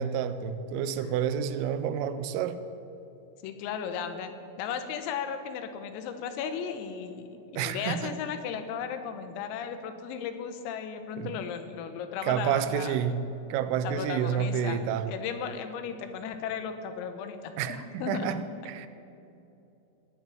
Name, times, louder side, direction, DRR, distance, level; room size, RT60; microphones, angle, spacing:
voice 1, 0.0-2.6 7.6-8.2 11.2-11.3 12.2-15.1 17.6-18.9, right 8 dB, 90° right, 12 dB, 3.3 m, -29 dB
voice 2, 3.4-13.0 13.8-14.8 15.1-18.3, left 7 dB, 85° left, 8 dB, 3.8 m, -36 dB
18.5 x 7.5 x 9.2 m, 2.9 s
omnidirectional pair, 5.9 m